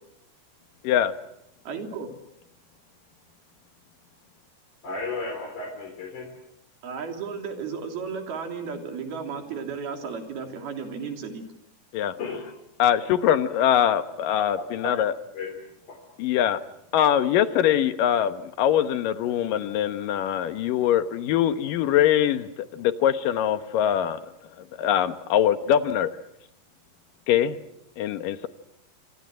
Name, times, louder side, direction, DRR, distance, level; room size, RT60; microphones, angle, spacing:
voice 1, 1.7-2.1 6.8-11.4, right 5 dB, 75° right, 4 dB, 5.2 m, -34 dB
voice 2, 4.8-6.3 12.2-12.5 14.8-14.9 15.3-15.5 15.9-16.0, left 3 dB, 55° left, 2 dB, 5.2 m, -33 dB
voice 3, 12.8-15.1 16.2-16.6 16.9-24.3 24.8-26.1 27.3-27.6 28.0-28.5, left 10 dB, 70° left, 11 dB, 2.6 m, -23 dB
27.0 x 26.0 x 7.7 m, 0.79 s
omnidirectional pair, 4.4 m